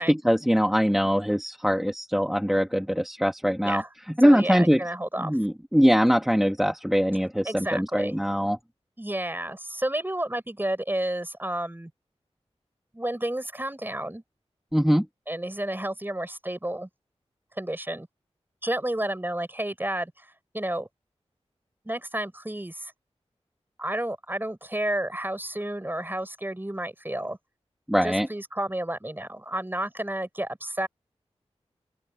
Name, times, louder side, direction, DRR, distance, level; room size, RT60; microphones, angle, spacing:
voice 1, 0.0-3.8 4.2-4.8 5.2-8.6 14.7-15.1 27.9-28.3, equal, 5° right, 1.9 m, -22 dB
voice 2, 4.2-5.4 7.4-8.2 9.0-11.9 12.9-14.2 15.3-16.9 17.6-18.1 18.6-20.3 20.5-20.9 21.9-22.9 23.8-27.4 28.0-30.9, right 1 dB, 20° right, 5.6 m, -31 dB
open air
cardioid pair, 45°, 11 cm